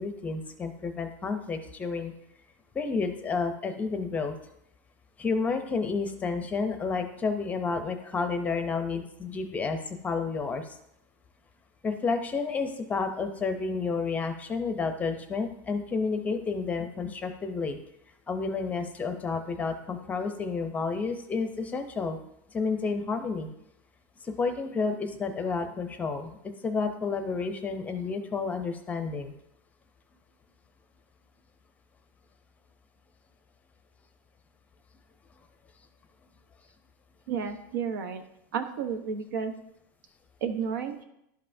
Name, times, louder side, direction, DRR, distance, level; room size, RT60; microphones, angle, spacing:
voice 1, 0.0-2.1 2.7-4.3 5.2-9.8 10.0-10.7 11.8-17.8 18.3-22.2 22.5-23.5 24.2-29.3, left 4 dB, 15° left, 7 dB, 0.6 m, -30 dB
voice 2, 37.3-38.2 38.5-39.5 40.4-41.0, right 6 dB, 80° right, 7 dB, 0.9 m, -31 dB
11.5 x 5.4 x 2.6 m, 0.80 s
supercardioid pair, 150°, 10 cm